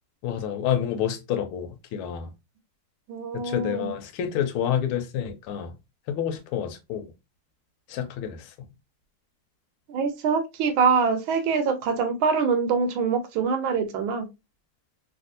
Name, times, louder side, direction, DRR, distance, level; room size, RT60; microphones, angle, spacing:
voice 1, 0.2-2.3 3.4-5.7 6.1-7.1 7.9-8.5, left 9 dB, 85° left, 1.5 m, -28 dB
voice 2, 3.1-3.9 9.9-14.3, right 5 dB, 75° right, 1.4 m, -24 dB
3.4 x 2.6 x 2.5 m
omnidirectional pair, 2.4 m